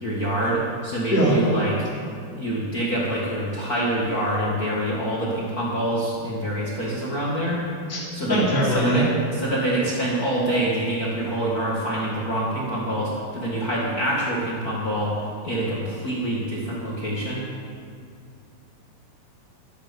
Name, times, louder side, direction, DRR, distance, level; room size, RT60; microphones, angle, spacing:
voice 1, 0.0-1.9 2.3-7.6 8.1-15.1 15.4-17.4, right 1 dB, 65° left, -6 dB, 0.9 m, -26 dB
voice 2, 8.3-9.1, equal, 5° right, -8 dB, 2.5 m, -21 dB
13.0 x 13.0 x 5.2 m, 2.2 s
omnidirectional pair, 4.8 m